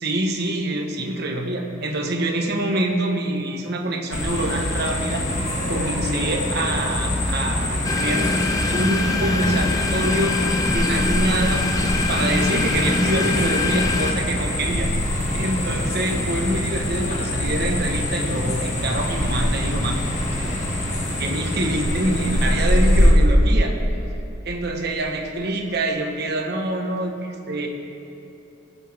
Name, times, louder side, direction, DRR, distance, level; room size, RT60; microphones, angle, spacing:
voice 1, 0.0-5.2 5.6-8.3 8.7-10.4 10.7-11.6 12.1-14.9 15.3-20.0 21.2-23.7 24.4-27.7, right 1 dB, 60° right, 2 dB, 1.3 m, -25 dB
sound 1, 4.1-23.1, left 1 dB, 40° left, 1.9 m, -24 dB
sound 2, 7.8-14.1, left 3 dB, 20° left, 0.8 m, -24 dB
20.5 x 7.2 x 3.5 m, 3.0 s
head